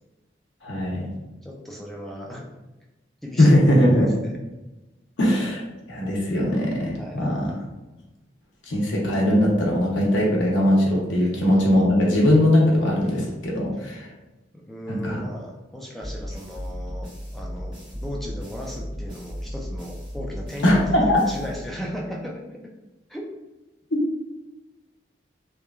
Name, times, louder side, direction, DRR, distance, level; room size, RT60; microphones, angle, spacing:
voice 1, 0.6-1.1 3.4-4.1 5.2-5.6 5.9-7.5 8.7-14.1 14.9-15.2 20.6-21.2, left 1 dB, 90° left, -3 dB, 0.7 m, -20 dB
voice 2, 1.4-2.5 3.2-3.6 3.8-4.3 7.0-7.3 11.2-11.3 14.7-22.6 23.1-23.3, equal, ahead, -2 dB, 0.3 m, -36 dB
sound 1, 16.0-22.1, equal, 25° right, 1.2 m, -35 dB
3.0 x 2.2 x 2.3 m, 1.1 s
head